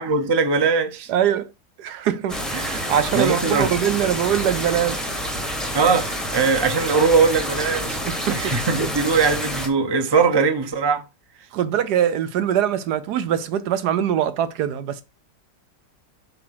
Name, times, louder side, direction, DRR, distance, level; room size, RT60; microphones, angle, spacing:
voice 1, 0.0-1.1 3.1-3.7 5.7-8.0 8.3-11.1, right 5 dB, 30° right, 0.4 m, -20 dB
voice 2, 1.1-1.5 1.8-5.0 8.0-8.9 11.5-15.0, right 10 dB, 70° right, 1.1 m, -23 dB
sound 1, 2.3-9.7, equal, ahead, 1.1 m, -28 dB
8.0 x 2.9 x 5.8 m
omnidirectional pair, 1.9 m